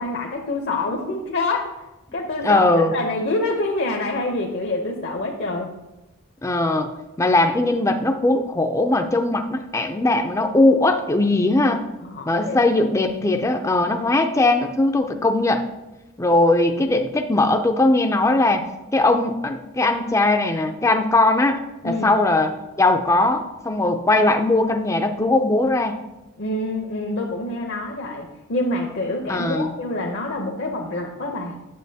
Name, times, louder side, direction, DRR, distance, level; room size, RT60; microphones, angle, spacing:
voice 1, 0.0-1.7 2.1-5.7 12.0-12.6 21.8-22.2 26.4-31.6, left 2 dB, 55° left, 1 dB, 0.7 m, -26 dB
voice 2, 2.4-2.9 6.4-6.9 7.2-11.8 12.3-15.7 16.2-18.6 18.9-26.0 29.3-29.7, left 2 dB, 15° left, 6 dB, 0.4 m, -19 dB
9.4 x 6.9 x 2.7 m, 1.0 s
head